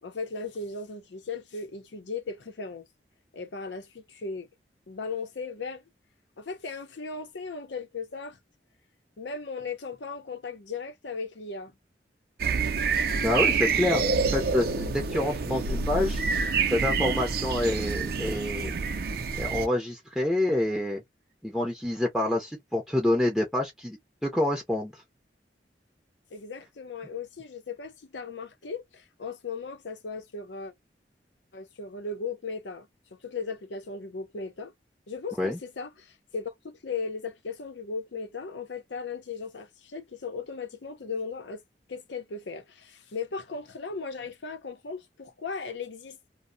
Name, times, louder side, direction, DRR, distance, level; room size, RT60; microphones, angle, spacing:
voice 1, 0.0-2.9 3.3-4.5 4.9-5.8 6.4-8.4 9.2-11.7 26.3-30.7 31.5-34.7 35.1-41.6 41.9-46.3, left 4 dB, 90° left, 0.6 m, -37 dB
sound 1, 12.4-19.7, right 5 dB, 60° right, 0.4 m, -27 dB
voice 2, 13.2-16.2 16.7-18.7 19.3-21.0 21.4-25.0 35.4-35.6, left 1 dB, ahead, 0.5 m, -27 dB
2.6 x 2.1 x 2.5 m
head